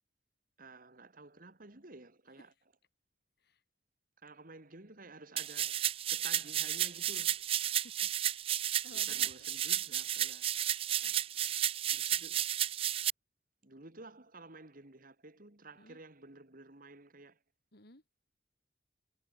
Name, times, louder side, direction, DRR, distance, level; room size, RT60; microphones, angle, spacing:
voice 1, 0.6-2.5 4.2-5.8 6.1-7.4 8.9-10.5 11.0-11.1 11.9-12.4 13.6-17.4, right 3 dB, 50° right, 2.6 m, -53 dB
sound 1, 5.4-13.1, right 11 dB, 30° right, 0.3 m, -33 dB
voice 2, 7.8-9.3 15.8-16.0 17.7-18.0, left 2 dB, 60° left, 4.6 m, -57 dB
head